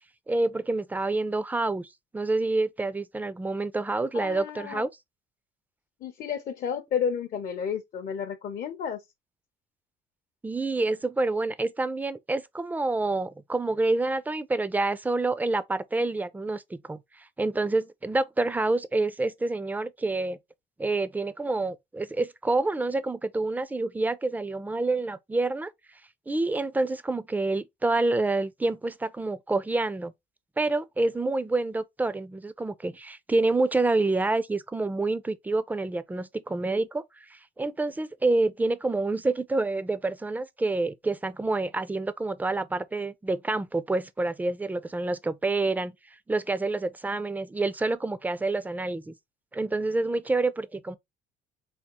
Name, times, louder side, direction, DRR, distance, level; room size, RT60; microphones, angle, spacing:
voice 1, 0.3-4.9 10.4-20.4 20.8-25.7 26.3-30.1 30.6-37.0 37.3-45.9 46.3-49.1 49.5-51.0, right 2 dB, 10° right, 0.3 m, -28 dB
voice 2, 4.1-4.9 6.0-9.0, left 7 dB, 55° left, 0.6 m, -31 dB
3.5 x 2.3 x 2.9 m
cardioid pair, 110°, 17 cm